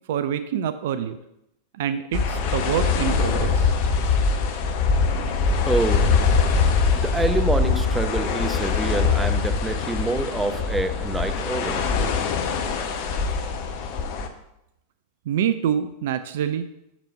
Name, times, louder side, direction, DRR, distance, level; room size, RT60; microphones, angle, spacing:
voice 1, 0.1-1.2 1.8-3.7 15.3-16.7, right 9 dB, 55° right, 11 dB, 0.4 m, -26 dB
sound 1, 2.1-14.3, left 5 dB, 45° left, 0.8 m, -23 dB
voice 2, 5.6-6.1 6.9-11.8, right 2 dB, 10° right, 8 dB, 0.7 m, -26 dB
6.7 x 6.0 x 5.2 m, 0.83 s
figure-of-eight pair, 90°, 0 cm